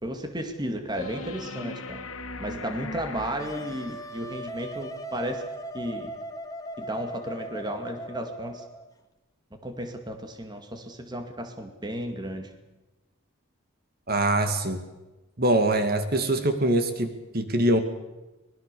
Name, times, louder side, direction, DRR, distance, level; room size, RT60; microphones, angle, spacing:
voice 1, 0.0-2.0 2.4-5.4 5.7-6.1 6.8-8.6 9.6-12.5, right 1 dB, 20° right, 6 dB, 2.2 m, -34 dB
sound 1, 0.9-4.3 6.9-7.0, left 3 dB, 85° left, 1.8 m, -39 dB
Wind instrument woodwind instrument, 3.4-8.9, equal, 15° left, 1.7 m, -38 dB
voice 2, 14.1-14.8 15.4-17.8, right 1 dB, 45° right, 8 dB, 2.2 m, -23 dB
25.0 x 21.0 x 6.9 m, 1.1 s
head